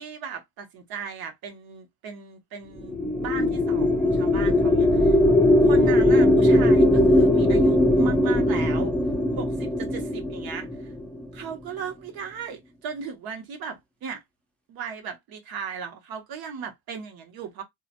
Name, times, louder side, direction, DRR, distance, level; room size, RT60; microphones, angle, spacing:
voice 1, 0.0-5.2 5.6-8.9 9.3-10.9 11.3-14.2 14.7-17.6, right 6 dB, 80° right, 0.9 m, -36 dB
sound 1, 2.8-11.3, left 1 dB, 5° left, 0.5 m, -20 dB
2.8 x 2.2 x 2.5 m
cardioid pair, 125°, 36 cm